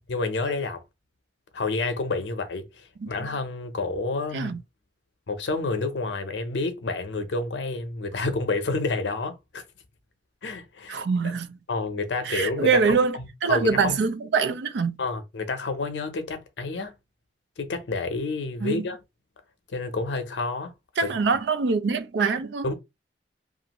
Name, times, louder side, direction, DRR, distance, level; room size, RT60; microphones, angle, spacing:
voice 1, 0.1-0.8 1.5-4.5 5.3-9.6 10.4-11.3 11.7-12.8 13.2-14.0 15.0-16.9 17.6-19.0 19.7-20.7 21.0-21.1 22.6-22.7, left 3 dB, 85° left, 0.6 m, -29 dB
voice 2, 10.9-11.6 12.2-15.0 18.6-18.9 21.0-22.7, right 5 dB, 75° right, 0.4 m, -24 dB
2.4 x 2.4 x 2.9 m
head